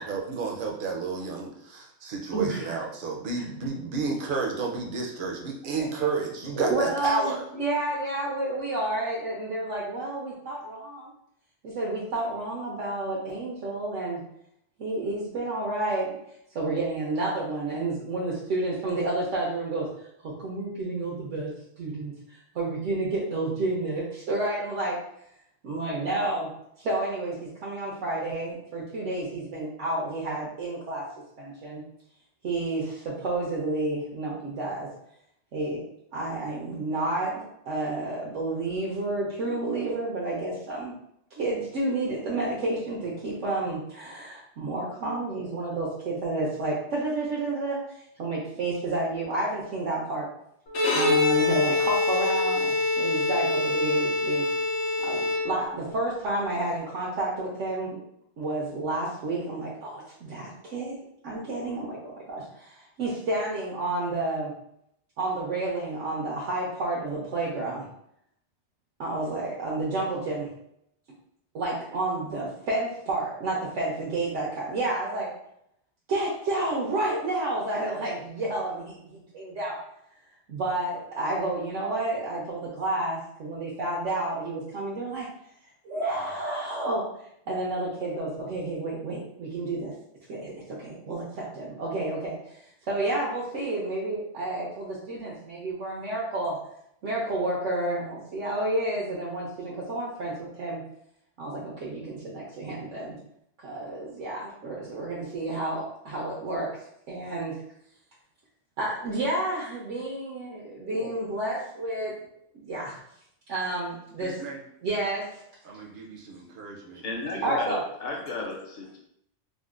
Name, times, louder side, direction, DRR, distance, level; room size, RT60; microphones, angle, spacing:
voice 1, 0.0-7.5 114.2-114.6 115.6-117.0 117.3-117.6, right 4 dB, 60° right, 0 dB, 0.6 m, -31 dB
voice 2, 2.3-2.8 6.6-11.1 11.6-14.2 14.8-16.2 16.5-22.1 22.5-25.0 25.6-26.5 26.8-31.0 31.4-31.8 32.4-34.9 35.5-35.8 36.1-40.9 41.3-50.3 50.9-54.4 55.0-58.0 58.4-61.0 61.2-62.0 62.3-64.5 65.2-67.9 69.0-70.5 71.5-75.3 76.1-79.8 80.5-85.3 85.8-87.0 87.5-89.9 90.3-92.6 92.9-96.6 97.0-100.8 101.4-103.2 103.6-107.6 108.8-112.2 112.5-112.9 113.5-114.5 114.8-115.4 117.4-117.8, right 2 dB, 90° right, -5 dB, 1.0 m, -30 dB
Bowed string instrument, 50.7-55.9, left 3 dB, 80° left, 1.0 m, -25 dB
voice 3, 117.0-119.0, left 3 dB, 50° left, 0 dB, 0.7 m, -34 dB
3.7 x 2.1 x 2.4 m, 0.75 s
omnidirectional pair, 1.2 m